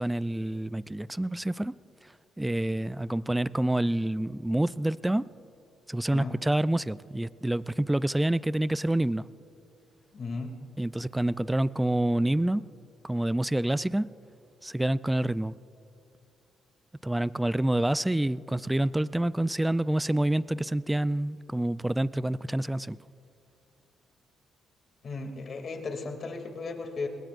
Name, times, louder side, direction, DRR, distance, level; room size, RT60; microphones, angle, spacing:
voice 1, 0.0-1.7 2.4-5.3 5.9-9.2 10.8-12.7 13.0-14.1 14.6-15.6 17.0-23.0, right 1 dB, 10° right, 17 dB, 0.4 m, -27 dB
voice 2, 10.1-10.5 25.0-27.1, left 3 dB, 50° left, 4 dB, 2.6 m, -35 dB
26.5 x 21.0 x 2.5 m, 2.7 s
cardioid pair, 90°, 0 cm